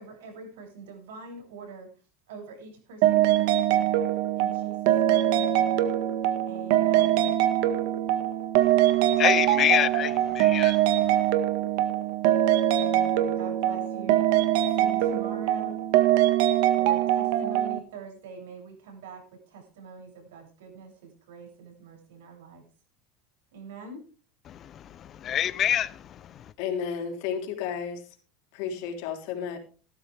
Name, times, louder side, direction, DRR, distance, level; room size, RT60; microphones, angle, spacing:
voice 1, 0.0-1.9 2.3-4.0 4.3-5.8 6.5-7.3 12.7-14.2 14.7-15.8 16.7-22.6 23.5-24.1, right 4 dB, 90° right, 7.6 m, -44 dB
sound 1, 3.0-17.8, right 12 dB, 65° right, 1.7 m, -23 dB
voice 2, 8.6-11.3 24.5-26.5, left 10 dB, 35° left, 0.6 m, -28 dB
voice 3, 26.6-28.0 28.5-29.6, left 7 dB, 65° left, 3.7 m, -32 dB
16.5 x 13.0 x 3.5 m
supercardioid pair, 140°, 0 cm